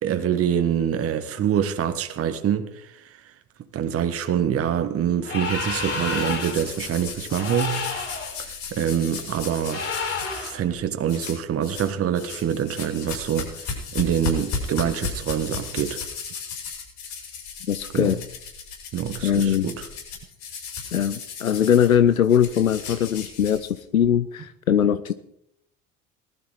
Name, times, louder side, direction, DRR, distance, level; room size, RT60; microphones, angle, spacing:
voice 1, 0.0-3.3 3.7-8.2 8.7-9.8 10.3-16.0 17.9-18.1 18.9-19.9, right 9 dB, 35° right, 1.5 m, -25 dB
sound 1, 5.2-6.7 7.3-8.3 9.7-10.6, left 4 dB, 35° left, 4.9 m, -29 dB
sound 2, 6.2-10.5 11.1-11.9 12.1-24.0, left 5 dB, 50° left, 6.7 m, -35 dB
voice 2, 17.7-18.2 19.2-19.7 20.9-25.1, left 9 dB, 85° left, 0.6 m, -21 dB
19.0 x 12.5 x 4.0 m
figure-of-eight pair, 65°, 40 cm